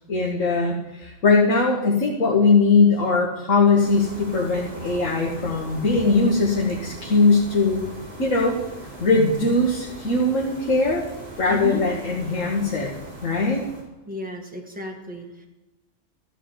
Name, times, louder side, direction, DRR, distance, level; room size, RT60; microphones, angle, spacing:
voice 1, 0.1-7.9 8.2-8.6 9.0-11.1 11.4-12.9 13.2-13.6, left 3 dB, 80° left, -3 dB, 1.8 m, -20 dB
sound 1, 3.8-13.8, right 2 dB, 45° right, 3.4 m, -39 dB
voice 2, 11.5-11.8 14.1-15.5, right 1 dB, 5° right, 0 dB, 1.5 m, -33 dB
13.0 x 5.0 x 7.8 m, 0.96 s
omnidirectional pair, 1.3 m